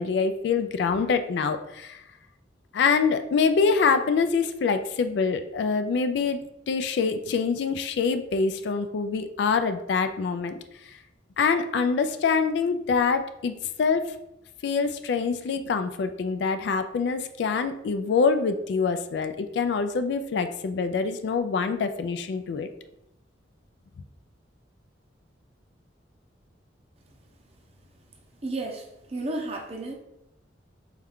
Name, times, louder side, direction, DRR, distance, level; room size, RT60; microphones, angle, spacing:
voice 1, 0.0-2.0 2.7-10.5 11.4-14.1 14.6-22.7, left 5 dB, 65° left, 9 dB, 0.3 m, -25 dB
voice 2, 28.4-30.0, right 2 dB, 35° right, 1 dB, 0.7 m, -32 dB
4.3 x 2.4 x 3.5 m, 0.85 s
head